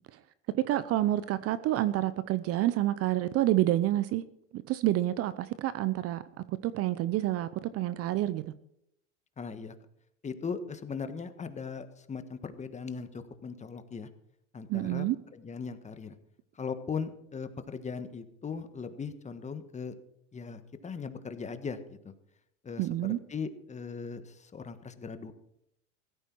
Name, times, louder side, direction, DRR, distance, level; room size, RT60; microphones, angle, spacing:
voice 1, 0.6-4.2 4.5-6.2 6.5-8.5 14.7-15.2 22.8-23.2, right 14 dB, 40° right, 0.8 m, -28 dB
voice 2, 9.4-9.7 10.2-14.1 14.5-15.1 15.3-16.2 16.5-19.9 20.3-22.1 22.6-25.3, left 5 dB, 20° left, 1.4 m, -39 dB
16.5 x 13.5 x 4.6 m
hypercardioid pair, 105°, 37 cm